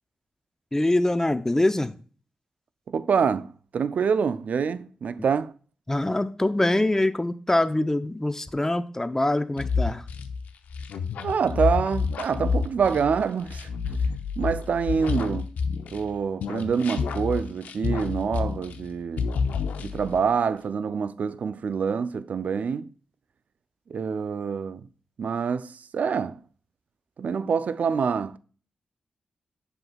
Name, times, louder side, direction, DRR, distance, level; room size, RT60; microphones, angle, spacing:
voice 1, 0.7-1.9 5.9-10.0, left 1 dB, 20° left, 0.6 m, -24 dB
voice 2, 2.9-5.5 11.2-13.7 14.4-15.5 15.9-19.3 19.8-22.9 23.9-24.9 25.2-26.4 27.2-28.4, right 6 dB, 70° right, 0.4 m, -26 dB
sound 1, 9.6-16.1 16.4-18.9 19.2-20.2, left 5 dB, 85° left, 0.6 m, -29 dB
7.8 x 5.8 x 2.3 m
supercardioid pair, 40°, 3 cm